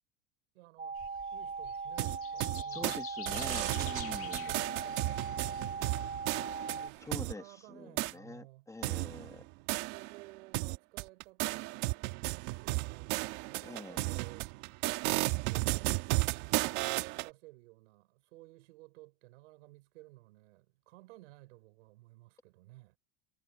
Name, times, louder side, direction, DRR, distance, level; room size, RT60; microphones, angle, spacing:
voice 1, 0.5-1.0 1.3-3.0 3.4-3.6 3.8-6.2 6.6-8.7 9.9-12.0 12.6-14.5 17.1-23.0, right 21 dB, 85° right, 5.2 m, -56 dB
sound 1, 0.8-6.9, right 5 dB, 20° right, 0.8 m, -39 dB
sound 2, 0.9-7.3, left 12 dB, 40° left, 1.7 m, -50 dB
sound 3, 2.0-3.0 3.3-7.3 8.0-8.1 8.8-10.2 10.5-17.3, right 22 dB, 60° right, 1.3 m, -34 dB
voice 2, 2.7-4.6 7.0-9.5 13.6-14.0, left 3 dB, 10° left, 1.2 m, -45 dB
supercardioid pair, 130°, 36 cm